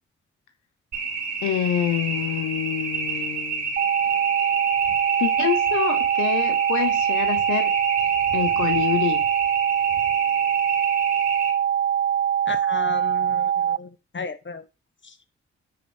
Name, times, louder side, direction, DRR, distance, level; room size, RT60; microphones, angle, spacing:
sound 1, 0.9-11.5, right 4 dB, 75° right, 3.0 m, -30 dB
voice 1, 1.4-3.7 5.2-7.7 8.3-9.2, left 11 dB, 90° left, 0.9 m, -26 dB
sound 2, 3.8-13.8, right 9 dB, 35° right, 0.4 m, -23 dB
voice 2, 12.5-14.6, left 5 dB, 40° left, 1.4 m, -34 dB
10.0 x 4.4 x 5.2 m
supercardioid pair, 45°, 29 cm